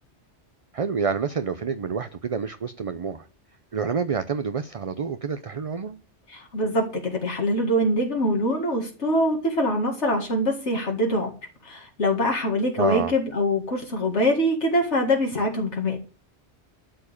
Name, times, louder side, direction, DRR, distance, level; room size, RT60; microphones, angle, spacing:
voice 1, 0.7-3.3 3.7-6.0 12.8-13.1, right 6 dB, 40° right, 11 dB, 0.5 m, -28 dB
voice 2, 6.3-11.3 11.6-16.0, equal, 80° left, 1 dB, 2.3 m, -24 dB
12.5 x 4.7 x 8.6 m, 0.37 s
omnidirectional pair, 1.2 m